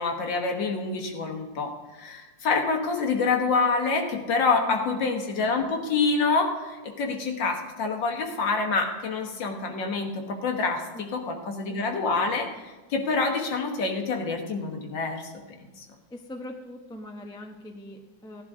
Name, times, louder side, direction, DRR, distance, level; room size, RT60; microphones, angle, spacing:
voice 1, 0.0-15.3 15.8-15.9, left 4 dB, 70° left, 3 dB, 1.9 m, -27 dB
voice 2, 4.7-5.1 10.9-11.8 16.1-18.4, left 1 dB, 5° left, 3 dB, 0.4 m, -42 dB
16.5 x 11.0 x 3.6 m, 1.2 s
omnidirectional pair, 2.1 m